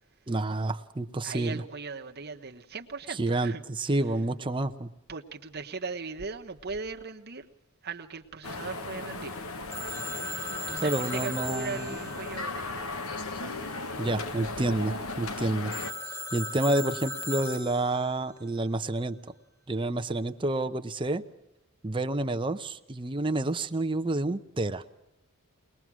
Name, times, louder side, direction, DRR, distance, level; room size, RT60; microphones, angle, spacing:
voice 1, 0.3-1.6 3.2-4.9 10.8-11.9 14.0-15.7 16.3-19.2 19.7-21.2 21.8-24.8, right 2 dB, 20° right, 0.7 m, -29 dB
voice 2, 1.2-3.6 5.1-7.5 7.8-9.4 10.0-10.4 10.7-12.9, right 4 dB, 45° right, 1.2 m, -38 dB
sound 1, 8.4-15.9, left 3 dB, 70° left, 1.3 m, -36 dB
Telephone, 9.7-13.3 15.7-18.2, left 1 dB, 15° left, 0.9 m, -38 dB
22.0 x 20.5 x 6.2 m
head